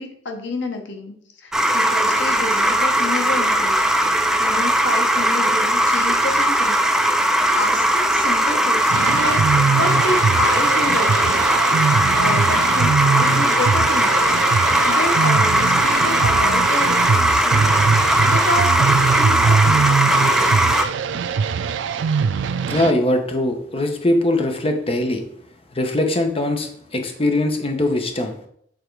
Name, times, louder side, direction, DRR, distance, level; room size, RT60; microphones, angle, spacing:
voice 1, 0.0-3.9 4.4-7.1 7.5-9.4 9.7-11.6 11.9-20.6, left 2 dB, 75° left, 4 dB, 1.1 m, -29 dB
sound 1, 1.5-20.8, right 1 dB, 5° right, 0.4 m, -18 dB
sound 2, 8.9-22.9, right 5 dB, 80° right, 0.4 m, -22 dB
voice 2, 22.7-25.2 25.7-28.4, left 1 dB, 30° left, 5 dB, 0.9 m, -21 dB
7.0 x 3.7 x 4.6 m, 0.66 s
head